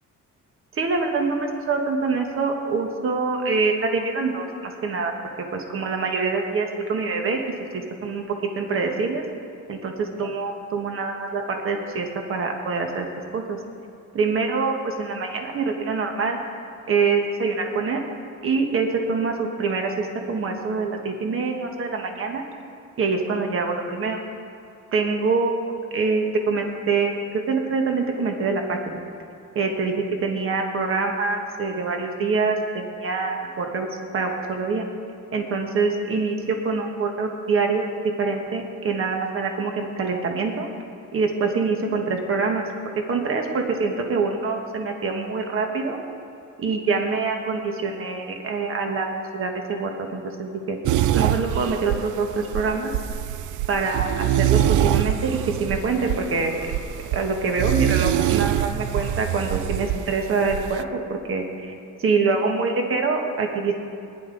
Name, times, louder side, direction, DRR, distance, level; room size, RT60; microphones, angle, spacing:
voice 1, 0.8-4.4 4.8-5.1 5.5-7.4 7.7-8.2 8.5-9.2 9.7-9.9 10.2-13.1 13.3-13.6 14.1-16.4 16.9-18.0 18.4-22.4 23.0-24.2 24.9-27.1 27.5-29.0 29.5-29.9 30.2-33.9 34.1-34.8 35.3-37.8 38.2-40.7 41.1-42.6 43.1-46.0 46.6-50.8 51.1-52.9 53.7-56.7 57.1-60.8 61.1-61.7 62.0-63.7, right 4 dB, 45° right, 3 dB, 1.3 m, -25 dB
sound 1, 50.9-60.8, right 12 dB, 75° right, 0.5 m, -24 dB
19.5 x 11.0 x 3.9 m, 2.5 s
cardioid pair, 175°, 31 cm